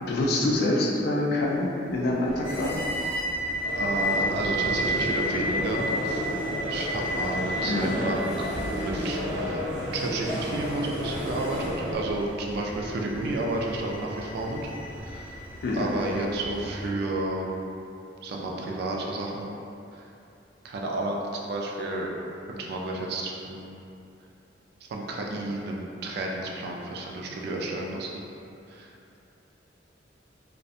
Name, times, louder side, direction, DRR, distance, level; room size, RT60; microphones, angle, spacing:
voice 1, 0.0-2.8 7.7-8.1 15.6-15.9, left 1 dB, 60° left, -1 dB, 0.3 m, -26 dB
sound 1, 2.3-16.9, equal, 15° left, 0.8 m, -33 dB
sound 2, 3.6-11.9, equal, 80° right, 0.7 m, -32 dB
voice 2, 3.8-9.6 9.9-14.7 15.0-15.3 15.7-17.5 18.2-19.5 19.9-20.0 20.6-22.1 22.5-23.7 24.8-28.2 28.7-28.9, right 2 dB, 60° right, -1 dB, 0.3 m, -31 dB
2.4 x 2.1 x 2.7 m, 2.7 s
head